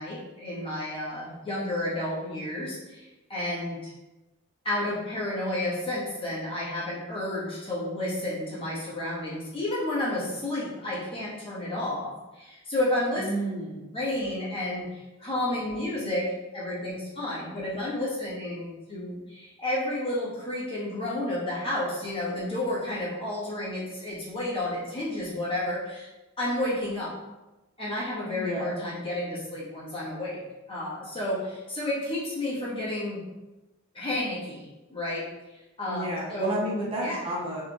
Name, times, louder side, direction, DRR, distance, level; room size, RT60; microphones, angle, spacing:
voice 1, 0.0-3.9 4.6-13.3 13.9-26.1 26.4-27.1 27.8-30.4 30.7-33.2 33.9-35.2 35.8-36.6 37.0-37.2, left 1 dB, 25° left, -8 dB, 1.4 m, -31 dB
voice 2, 13.2-13.9 28.3-28.8 35.9-37.6, right 1 dB, 25° right, -5 dB, 0.7 m, -31 dB
4.8 x 3.0 x 2.4 m, 1.0 s
head